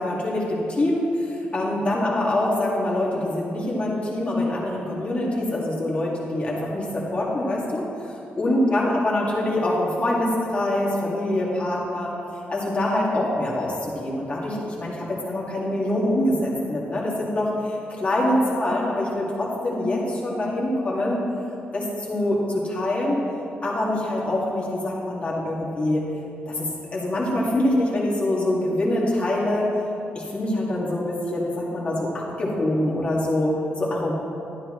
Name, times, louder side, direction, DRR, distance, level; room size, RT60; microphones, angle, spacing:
voice 1, 0.0-7.9 8.4-12.1 12.5-21.2 21.7-23.2 23.6-26.0 26.5-29.7 30.1-34.2, left 1 dB, 30° left, -4 dB, 2.1 m, -24 dB
12.5 x 9.8 x 3.2 m, 2.7 s
wide cardioid pair, 130°, 4 cm